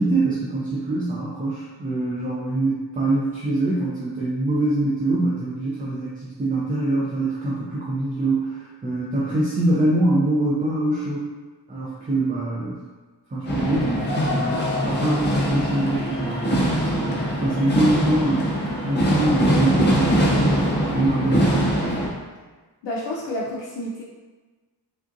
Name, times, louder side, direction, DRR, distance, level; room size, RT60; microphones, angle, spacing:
voice 1, 0.0-11.2 11.7-12.8 13.3-20.3 20.9-21.7, right 2 dB, 20° right, -6 dB, 0.3 m, -24 dB
sound 1, 13.5-22.1, equal, 25° left, 0.6 m, -22 dB
voice 2, 22.8-24.0, left 1 dB, 75° left, -4 dB, 0.5 m, -29 dB
3.5 x 2.4 x 2.5 m, 1.3 s
wide cardioid pair, 155°, 43 cm